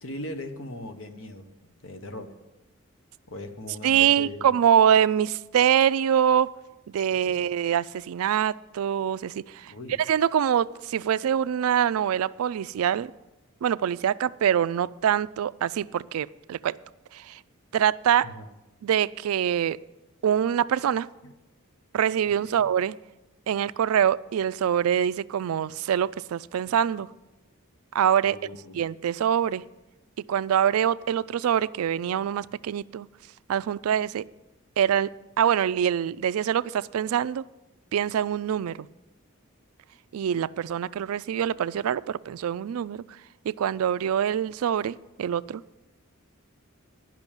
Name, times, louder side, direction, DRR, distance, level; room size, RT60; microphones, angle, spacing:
voice 1, 0.0-1.5 1.8-2.3 3.3-4.5 7.2-7.5 9.7-10.0 18.2-18.4 21.2-21.3 22.2-22.7 28.3-28.8, left 1 dB, 65° left, 7 dB, 1.1 m, -39 dB
voice 2, 3.8-6.5 6.9-9.7 10.1-13.1 13.6-16.8 17.1-17.4 17.7-18.3 18.8-19.8 20.2-21.1 21.9-22.9 23.5-27.1 27.9-28.4 28.7-29.6 30.3-33.1 33.5-34.2 34.8-37.4 37.9-38.9 40.1-43.0 43.5-45.6, right 9 dB, 90° right, 19 dB, 0.3 m, -24 dB
10.5 x 6.1 x 8.9 m, 1.0 s
head